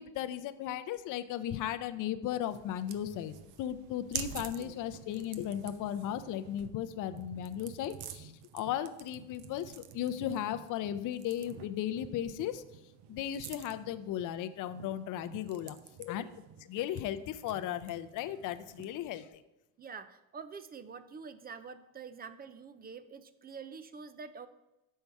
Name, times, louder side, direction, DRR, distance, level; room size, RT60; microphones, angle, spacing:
voice 1, 0.0-12.6 13.1-16.2 16.7-19.2, left 11 dB, 50° left, 11 dB, 0.5 m, -36 dB
sound 1, 2.4-19.1, right 9 dB, 70° right, 0.7 m, -48 dB
voice 2, 4.4-4.8 16.2-16.4 19.8-24.5, right 5 dB, 25° right, 12 dB, 0.3 m, -47 dB
6.8 x 5.5 x 4.6 m, 0.97 s
cardioid pair, 105°, 41 cm